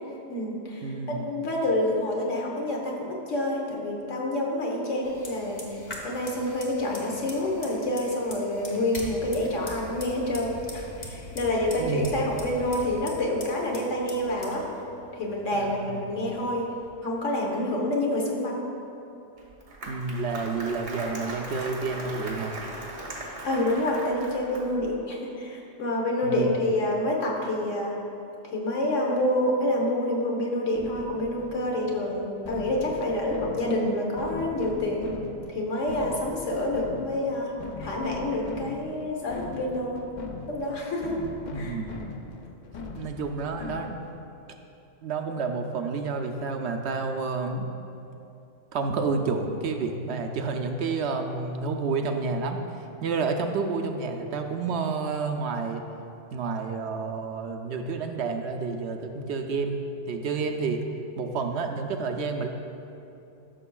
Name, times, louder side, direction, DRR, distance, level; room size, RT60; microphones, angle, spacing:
voice 1, 0.3-5.6 6.0-14.6 15.1-16.7 17.0-18.6 23.4-27.9 28.5-35.1 35.5-37.5 37.8-40.0 40.5-41.2 41.5-41.8, left 1 dB, 80° left, -1 dB, 1.5 m, -28 dB
voice 2, 0.8-1.3 11.8-12.1 15.5-16.0 19.9-22.5 26.2-26.4 41.5-41.9 42.9-44.0 45.0-47.7 48.7-52.6 53.0-55.8 56.3-60.8 61.2-62.5, right 4 dB, 70° right, 4 dB, 0.8 m, -30 dB
Fire, 5.0-16.9, left 1 dB, 35° left, 1.1 m, -42 dB
Applause, 19.4-24.9, right 1 dB, 85° right, 1.5 m, -38 dB
sound 1, 30.7-44.2, left 3 dB, 55° left, 0.5 m, -40 dB
12.5 x 6.3 x 2.3 m, 2.8 s
omnidirectional pair, 1.3 m